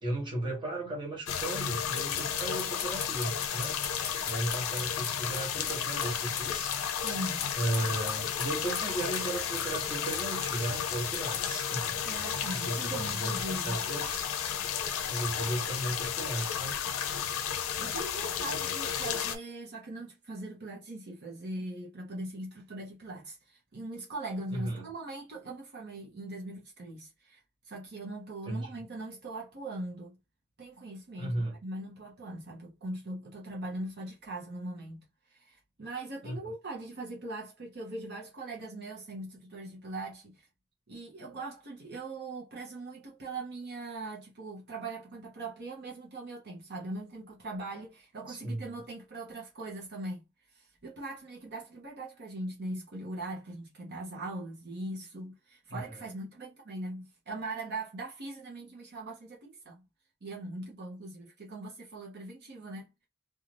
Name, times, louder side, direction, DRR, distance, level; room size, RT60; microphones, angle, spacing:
voice 1, 0.0-3.8 4.3-6.7 7.5-12.0 12.5-14.3 15.1-16.7 24.5-24.9 28.5-28.7 31.2-31.6 36.2-36.5 48.3-48.8 55.7-56.1, right 1 dB, 25° right, 1.0 m, -35 dB
sound 1, 1.3-19.4, left 8 dB, 85° left, 0.4 m, -33 dB
sound 2, 2.0-6.1 6.4-6.5 6.7-6.8 7.1-8.9 9.1-9.2 9.6-9.7 10.1-10.3 11.1-11.4, left 7 dB, 45° left, 0.8 m, -39 dB
voice 2, 7.0-7.5 12.0-13.8 17.8-27.4 27.6-30.2 30.6-40.5 40.9-50.2 50.5-59.8 60.2-62.9, right 2 dB, 50° right, 0.8 m, -41 dB
2.5 x 2.3 x 3.1 m
head